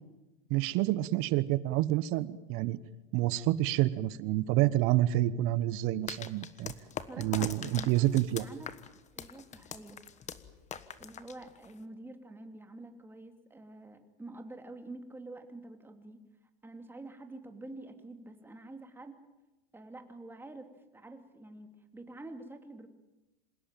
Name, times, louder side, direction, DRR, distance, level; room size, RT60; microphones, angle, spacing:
voice 1, 0.5-2.8 3.1-6.7 7.2-8.4, right 15 dB, 45° right, 17 dB, 1.2 m, -28 dB
sound 1, 6.1-11.8, left 8 dB, 25° left, 1.4 m, -42 dB
voice 2, 7.1-8.1 8.4-8.7 9.1-10.0 11.0-16.2 16.6-19.2 19.7-20.7 20.9-22.9, right 2 dB, 5° right, 6 dB, 2.9 m, -47 dB
27.0 x 17.0 x 9.2 m, 1.0 s
hypercardioid pair, 120°, 29 cm